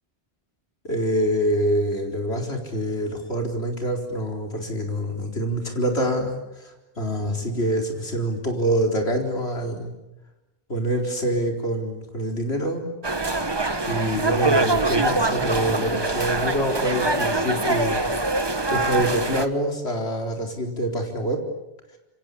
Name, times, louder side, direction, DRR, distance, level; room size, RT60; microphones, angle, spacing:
voice 1, 0.8-6.4 7.0-9.9 10.7-12.9 13.9-18.1 18.7-21.4, right 1 dB, 75° left, 3 dB, 4.6 m, -25 dB
sound 1, 13.0-19.5, right 2 dB, 25° right, 1.3 m, -24 dB
27.0 x 25.5 x 8.6 m, 0.93 s
omnidirectional pair, 1.1 m